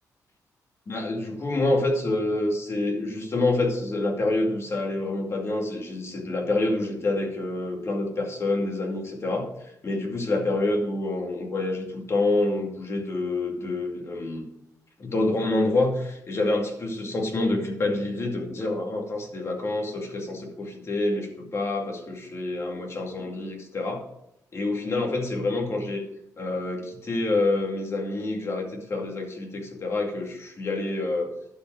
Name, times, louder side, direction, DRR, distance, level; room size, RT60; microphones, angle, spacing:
voice 1, 0.9-9.5 9.8-14.4 15.0-24.0 24.5-26.0 26.4-31.3, left 2 dB, 40° left, 2 dB, 2.4 m, -27 dB
11.5 x 5.3 x 6.4 m, 0.79 s
cardioid pair, 100°, 7 cm